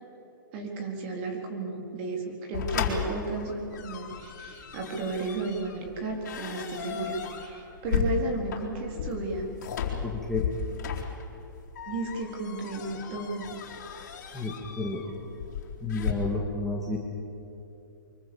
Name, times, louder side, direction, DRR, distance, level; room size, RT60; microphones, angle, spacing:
voice 1, 0.5-9.5 11.9-13.5, right 3 dB, 30° right, 2 dB, 4.1 m, -33 dB
sound 1, 2.5-16.1, left 7 dB, 50° left, 4.3 m, -35 dB
voice 2, 10.0-10.4 14.3-15.0 15.8-17.0, left 2 dB, 5° left, -4 dB, 2.0 m, -31 dB
24.5 x 23.0 x 7.2 m, 2.9 s
hypercardioid pair, 165°, 11 cm